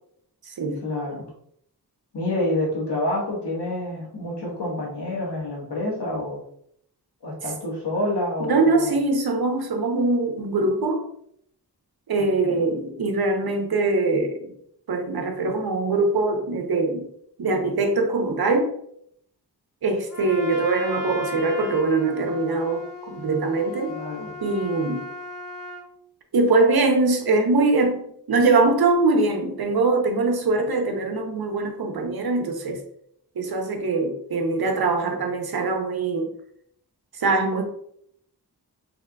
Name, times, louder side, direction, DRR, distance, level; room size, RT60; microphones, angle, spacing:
voice 1, 0.8-1.3 2.1-6.4 7.2-9.0 12.2-12.6 23.9-24.3, left 1 dB, 90° left, -3 dB, 1.2 m, -28 dB
voice 2, 8.4-11.1 12.1-14.5 14.9-17.1 17.4-18.7 19.8-23.9 24.4-25.0 26.3-28.0 28.3-32.8 33.3-36.3 37.1-37.6, right 3 dB, 65° right, 4 dB, 0.7 m, -22 dB
Trumpet, 20.1-25.9, left 2 dB, 50° left, 0.9 m, -36 dB
3.6 x 3.3 x 2.2 m, 0.69 s
wide cardioid pair, 65°, 40 cm